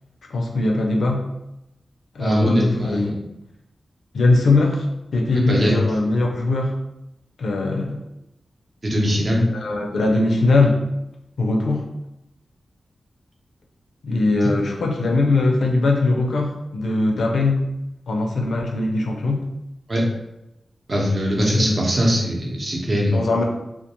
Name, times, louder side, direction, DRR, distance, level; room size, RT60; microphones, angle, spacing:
voice 1, 0.3-1.2 2.1-3.1 4.1-4.8 5.1-6.8 7.4-8.0 9.3-10.8 11.4-11.9 14.0-17.6 18.1-19.4 21.4-21.8 23.1-23.4, left 2 dB, 85° left, 1 dB, 0.4 m, -20 dB
voice 2, 2.2-3.2 5.3-5.7 8.8-9.4 19.9-20.0 20.9-23.4, equal, 45° right, -2 dB, 0.7 m, -21 dB
2.3 x 2.2 x 2.8 m, 0.88 s
cardioid pair, 65°, 0 cm